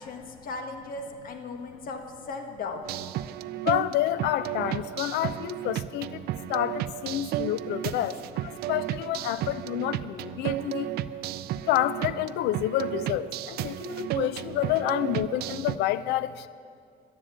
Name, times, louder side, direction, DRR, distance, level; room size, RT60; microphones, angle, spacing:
voice 1, 0.0-2.8 9.0-9.3, left 3 dB, 55° left, 5 dB, 1.4 m, -37 dB
sound 1, 2.8-15.8, right 13 dB, 70° right, 0.4 m, -33 dB
voice 2, 3.6-10.9 11.6-16.5, left 13 dB, 85° left, 15 dB, 0.5 m, -29 dB
11.0 x 10.0 x 7.2 m, 2.2 s
cardioid pair, 110°, 17 cm